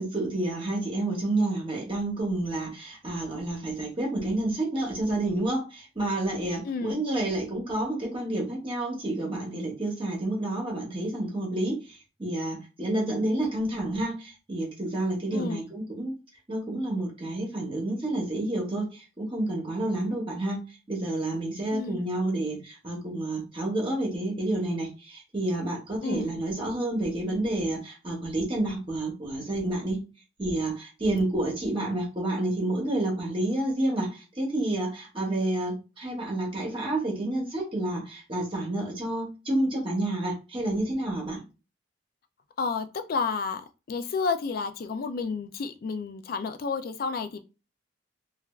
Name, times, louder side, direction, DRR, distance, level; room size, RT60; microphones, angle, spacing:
voice 1, 0.0-16.1 16.5-20.6 20.9-30.0 30.4-41.4, right 1 dB, 25° right, -2 dB, 0.9 m, -29 dB
voice 2, 6.6-7.0 15.3-15.6 21.7-22.1 26.0-26.3 42.6-47.4, left 4 dB, 50° left, 9 dB, 0.3 m, -31 dB
3.2 x 2.3 x 2.3 m, 0.30 s
head